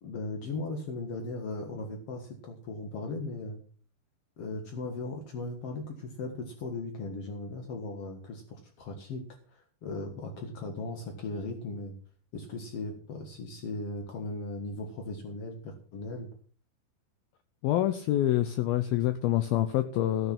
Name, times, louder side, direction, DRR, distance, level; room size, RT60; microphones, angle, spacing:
voice 1, 0.0-3.6 4.4-9.2 9.5-11.9 12.3-16.3, left 2 dB, 60° left, 3 dB, 1.5 m, -37 dB
voice 2, 17.6-20.3, left 13 dB, 90° left, 10 dB, 2.1 m, -26 dB
15.5 x 6.9 x 6.0 m, 0.42 s
omnidirectional pair, 5.3 m